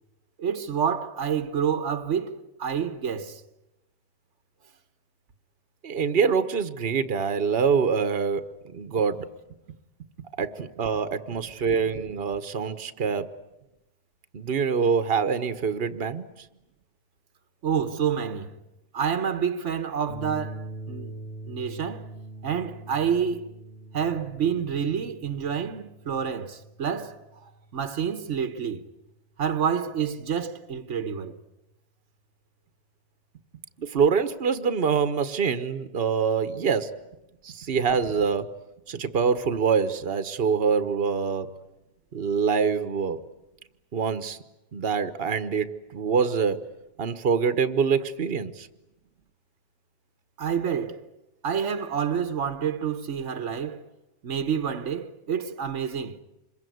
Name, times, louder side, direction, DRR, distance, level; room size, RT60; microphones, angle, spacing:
voice 1, 0.4-3.4 17.6-18.6 18.9-21.2 21.5-22.1 22.4-23.5 23.9-28.9 29.4-31.4 50.4-51.1 51.4-53.9 54.2-56.2, right 7 dB, 85° right, 1.5 m, -28 dB
voice 2, 5.8-9.3 10.4-13.3 14.3-16.2 33.8-36.9 37.4-38.5 38.9-41.5 42.1-43.2 43.9-44.4 44.7-46.6 47.0-48.7, right 6 dB, 55° right, 1.3 m, -25 dB
sound 1, 20.1-28.6, right 2 dB, 55° left, 6.6 m, -43 dB
26.5 x 22.5 x 9.3 m
omnidirectional pair, 1.2 m